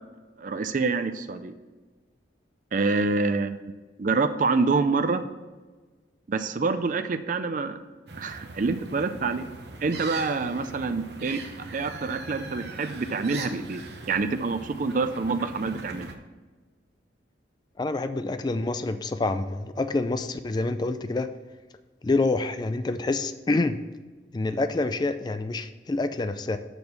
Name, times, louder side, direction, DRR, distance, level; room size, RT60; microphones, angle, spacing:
voice 1, 0.4-1.5 2.7-3.6 4.0-5.2 6.3-7.8 8.2-9.5 9.8-11.4 11.7-13.8 14.1-16.1, right 4 dB, 45° right, 9 dB, 0.4 m, -26 dB
sound 1, 8.1-16.2, right 3 dB, 65° right, 0.8 m, -41 dB
voice 2, 17.8-21.3 22.0-23.8 24.3-26.6, left 2 dB, 25° left, 10 dB, 0.3 m, -27 dB
6.2 x 5.3 x 5.9 m, 1.3 s
head